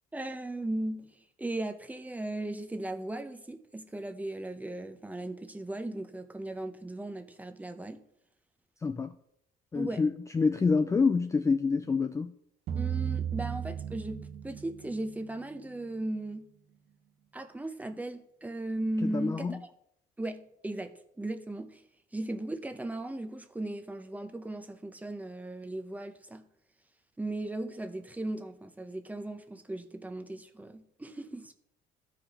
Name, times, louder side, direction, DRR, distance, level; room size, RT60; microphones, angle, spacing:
voice 1, 0.1-8.0 9.7-10.0 12.8-16.5 17.3-19.6 20.2-21.8 22.1-26.4 27.2-31.5, right 1 dB, 10° right, 0.7 m, -37 dB
voice 2, 8.8-9.1 9.7-12.3 19.0-19.6, left 4 dB, 20° left, 0.4 m, -27 dB
sound 1, 12.7-15.1, right 9 dB, 70° right, 1.1 m, -34 dB
14.0 x 4.9 x 2.9 m
cardioid pair, 110°, 17 cm